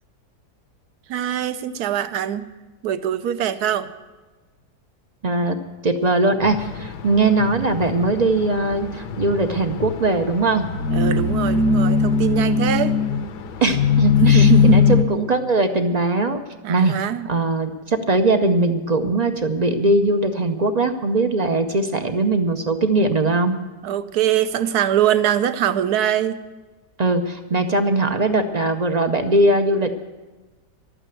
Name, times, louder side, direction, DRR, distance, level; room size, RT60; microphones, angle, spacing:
voice 1, 1.1-2.5 2.8-3.9 10.9-13.0 14.2-15.0 16.6-17.3 23.8-26.4, right 10 dB, 70° right, 12 dB, 1.2 m, -22 dB
voice 2, 5.2-5.6 5.8-10.7 13.6-16.4 16.7-17.0 17.2-23.6 27.0-30.0, right 2 dB, 50° right, 7 dB, 0.5 m, -20 dB
sound 1, 6.4-15.0, left 5 dB, 80° left, 1.4 m, -20 dB
12.0 x 9.0 x 9.0 m, 1.2 s
omnidirectional pair, 1.8 m